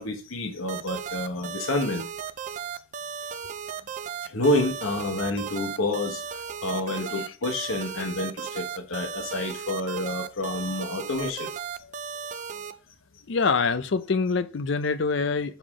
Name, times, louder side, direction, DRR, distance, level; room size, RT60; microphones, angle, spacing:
voice 1, 0.0-2.0 4.2-11.5, left 1 dB, 80° left, 1.1 m, -29 dB
sound 1, 0.7-12.7, right 7 dB, 35° right, 0.4 m, -35 dB
voice 2, 6.9-7.2 13.3-15.6, left 4 dB, 60° left, 0.5 m, -25 dB
7.0 x 3.8 x 4.8 m
head